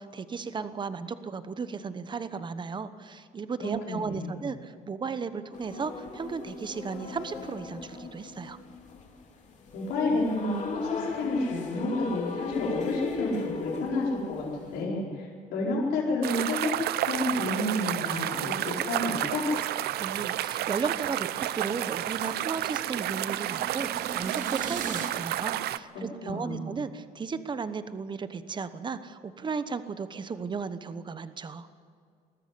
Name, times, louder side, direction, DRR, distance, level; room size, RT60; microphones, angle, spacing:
voice 1, 0.0-8.6 20.0-31.7, right 5 dB, 25° right, 12 dB, 1.0 m, -35 dB
voice 2, 3.6-4.4 9.7-16.7 17.0-19.5 25.9-26.7, left 2 dB, 85° left, -5 dB, 4.6 m, -30 dB
sound 1, 5.5-14.8, left 3 dB, 45° left, 3.3 m, -38 dB
sound 2, 16.2-25.8, right 13 dB, 70° right, 0.6 m, -31 dB
sound 3, 21.9-25.1, right 5 dB, 50° right, 2.7 m, -41 dB
20.5 x 14.0 x 9.7 m, 2.2 s
cardioid pair, 110°, 17 cm